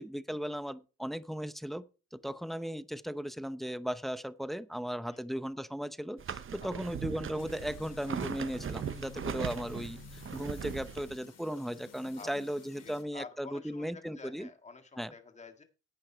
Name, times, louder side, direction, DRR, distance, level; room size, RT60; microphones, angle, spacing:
voice 1, 0.0-1.8 2.1-14.5 15.0-15.1, equal, ahead, 0.7 m, -37 dB
sound 1, 6.2-11.1, right 8 dB, 45° right, 1.0 m, -39 dB
sound 2, 7.4-13.0, left 7 dB, 55° left, 2.5 m, -52 dB
voice 2, 12.8-15.6, left 4 dB, 25° left, 1.9 m, -49 dB
10.5 x 8.6 x 4.5 m
cardioid pair, 90°, 30 cm